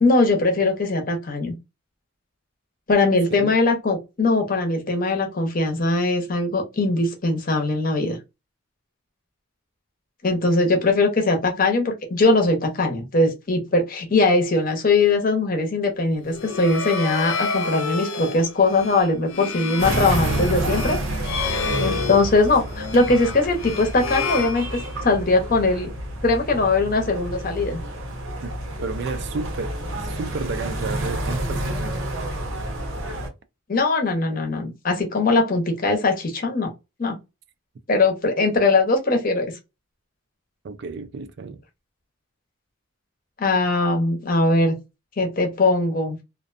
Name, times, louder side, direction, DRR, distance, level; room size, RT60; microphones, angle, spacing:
voice 1, 0.0-1.5 2.9-8.2 10.2-21.0 21.8-24.7 25.0-25.9 26.2-27.8 33.7-36.7 37.0-37.1 37.9-39.5 43.4-44.7 45.2-46.2, left 3 dB, 40° left, 0.7 m, -21 dB
sound 1, 16.2-25.2, left 5 dB, 75° left, 0.5 m, -30 dB
sound 2, 19.8-33.3, right 1 dB, 80° right, 0.9 m, -29 dB
voice 2, 21.6-22.2 28.4-28.5 28.8-32.0 40.6-41.6, right 4 dB, 55° right, 0.4 m, -32 dB
2.5 x 2.2 x 2.4 m
head